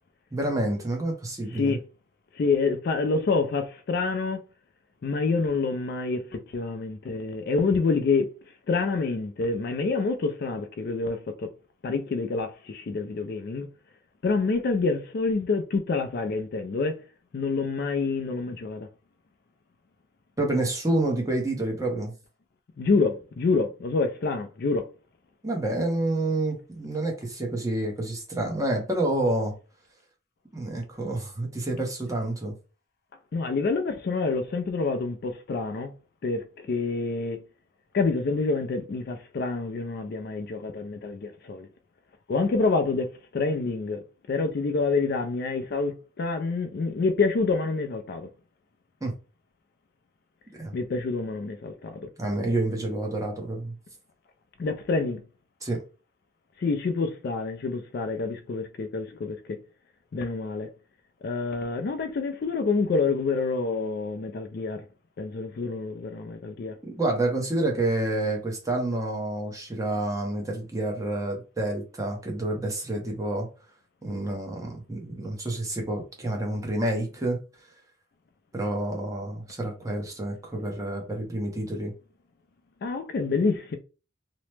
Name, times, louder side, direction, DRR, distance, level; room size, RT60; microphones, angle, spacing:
voice 1, 0.3-1.8 20.4-22.1 25.4-29.5 30.5-32.5 49.0-49.1 50.6-50.8 52.2-53.7 55.6-55.8 66.8-73.5 74.0-77.4 78.5-81.9, right 1 dB, 15° right, 0.7 m, -28 dB
voice 2, 2.3-4.4 5.0-8.3 8.7-11.5 11.8-13.7 14.2-17.0 17.3-18.9 22.8-24.9 33.3-35.9 36.2-37.4 37.9-41.7 42.3-44.0 44.3-48.3 50.7-52.1 54.6-55.2 56.6-59.6 60.1-60.7 61.2-64.8 65.2-66.8 82.8-83.8, left 4 dB, 50° left, 0.3 m, -27 dB
2.9 x 2.0 x 3.2 m
head